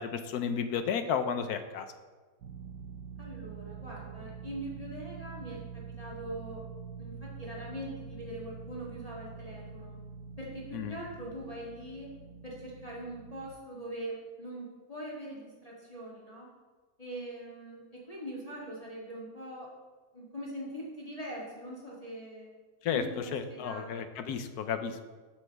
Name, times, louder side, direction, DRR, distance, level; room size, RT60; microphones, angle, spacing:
voice 1, 0.0-1.9 10.7-11.0 22.8-23.0 23.3-25.0, left 7 dB, 70° left, 8 dB, 1.3 m, -32 dB
sound 1, 2.4-13.5, right 6 dB, 65° right, 1.2 m, -45 dB
voice 2, 3.2-6.6 7.0-10.0 10.4-12.1 12.4-16.5 17.0-19.7 20.1-22.5 22.9-24.1, right 1 dB, 20° left, -5 dB, 1.9 m, -42 dB
13.5 x 8.2 x 3.5 m, 1.4 s
omnidirectional pair, 1.8 m